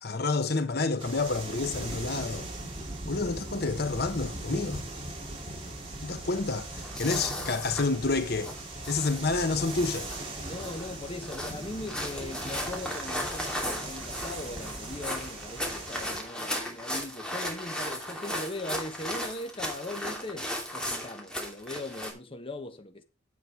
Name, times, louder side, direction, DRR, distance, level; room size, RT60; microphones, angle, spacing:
voice 1, 0.0-2.5 3.0-4.8 6.0-8.5 8.9-10.1, left 3 dB, 60° left, 1.0 m, -29 dB
sound 1, 1.0-16.2, right 2 dB, 30° right, 3.5 m, -39 dB
sound 2, 6.8-22.1, equal, 5° left, 2.8 m, -36 dB
voice 2, 10.4-23.0, left 2 dB, 30° left, 1.1 m, -39 dB
9.6 x 7.7 x 4.6 m
head